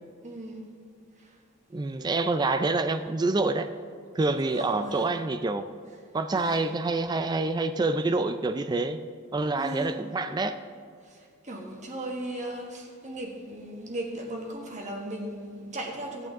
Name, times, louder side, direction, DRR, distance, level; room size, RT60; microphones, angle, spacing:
voice 1, 0.2-0.7 1.2-1.4 4.3-5.1 6.3-6.6 9.6-10.0 11.0-16.3, right 1 dB, 35° right, 0 dB, 1.4 m, -37 dB
voice 2, 1.7-3.7 4.2-5.6 6.1-9.0 9.3-10.6, right 3 dB, 20° right, 10 dB, 0.3 m, -27 dB
16.5 x 8.9 x 3.6 m, 2.1 s
head